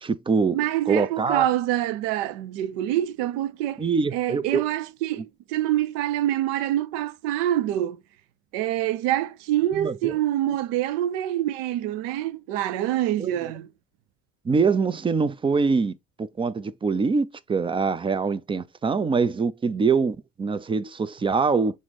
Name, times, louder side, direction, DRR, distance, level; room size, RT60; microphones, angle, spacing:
voice 1, 0.0-0.6 0.9-1.5 3.8-4.6 9.8-10.1 10.5-10.6 13.2-13.4 14.5-21.8, right 5 dB, 15° right, 0.3 m, -24 dB
voice 2, 0.5-3.8 4.1-8.0 8.5-13.7, right 13 dB, 65° right, 0.6 m, -26 dB
3.7 x 3.0 x 4.0 m
figure-of-eight pair, 55°, 41 cm